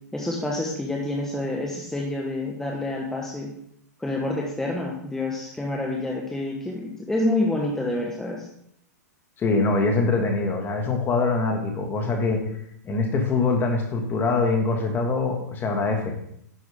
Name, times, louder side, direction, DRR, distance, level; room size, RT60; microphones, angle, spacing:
voice 1, 0.1-3.5 4.0-8.5, left 2 dB, 5° left, -2 dB, 1.4 m, -28 dB
voice 2, 9.4-12.4 12.8-16.1, left 3 dB, 20° left, 3 dB, 2.1 m, -23 dB
11.0 x 7.7 x 3.7 m, 0.72 s
hypercardioid pair, 125°, 9 cm